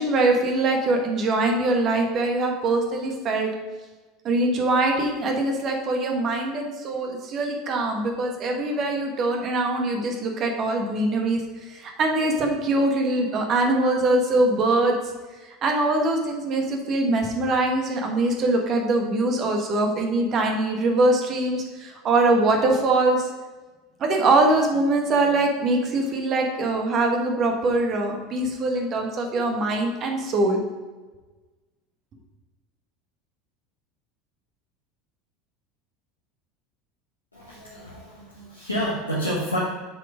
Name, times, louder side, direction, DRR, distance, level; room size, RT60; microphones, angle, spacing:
voice 1, 0.0-3.5 4.2-11.4 11.7-14.9 15.6-23.3 24.0-30.6, right 2 dB, 40° right, 2 dB, 1.4 m, -23 dB
voice 2, 37.3-39.6, equal, 85° left, -8 dB, 1.4 m, -29 dB
7.4 x 5.0 x 5.0 m, 1.3 s
figure-of-eight pair, 75°, 0 cm